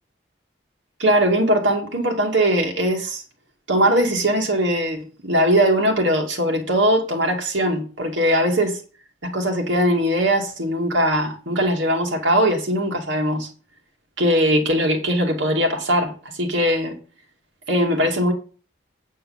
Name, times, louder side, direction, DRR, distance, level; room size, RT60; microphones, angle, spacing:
voice 1, 1.0-3.2 3.7-8.8 9.2-13.5 14.2-16.1 16.4-17.0 17.7-18.3, equal, 75° right, 2.5 m, -20 dB
9.1 x 4.5 x 7.2 m
head